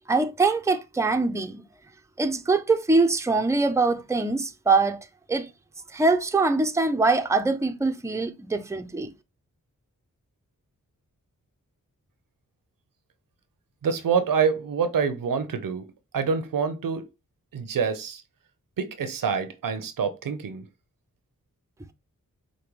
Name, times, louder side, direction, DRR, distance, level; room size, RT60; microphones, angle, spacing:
voice 1, 0.1-1.6 2.2-5.0 5.3-5.5 5.9-9.1, right 3 dB, 10° right, 0.5 m, -23 dB
voice 2, 13.8-15.9 16.1-17.1 17.5-18.2 18.8-20.7, right 6 dB, 80° right, 0.7 m, -26 dB
4.9 x 2.2 x 3.0 m
cardioid pair, 50°, 33 cm